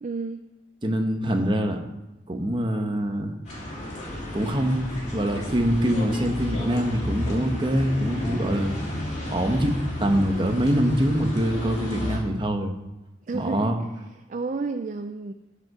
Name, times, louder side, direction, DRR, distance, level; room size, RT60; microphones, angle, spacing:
voice 1, 0.0-0.4 13.2-15.3, right 4 dB, 40° right, 8 dB, 0.4 m, -32 dB
voice 2, 0.8-1.8 2.3-3.3 4.3-8.8 9.3-12.7 13.3-13.8, equal, 25° right, 4 dB, 1.0 m, -24 dB
sound 1, 3.4-12.2, left 1 dB, 35° left, 2.8 m, -32 dB
14.0 x 5.3 x 4.8 m, 0.98 s
head